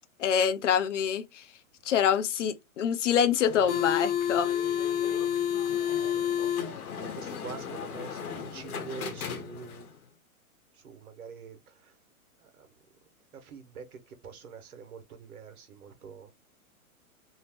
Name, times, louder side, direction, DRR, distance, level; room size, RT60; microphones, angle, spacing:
voice 1, 0.2-1.4 1.8-4.5, left 8 dB, 60° left, 0.5 m, -26 dB
sound 1, 3.4-9.9, left 9 dB, 85° left, 1.0 m, -31 dB
voice 2, 5.9-6.3 6.6-9.8 10.8-11.9 12.4-12.7 13.3-16.3, right 6 dB, 75° right, 1.0 m, -45 dB
2.7 x 2.1 x 3.3 m
hypercardioid pair, 160°, 43 cm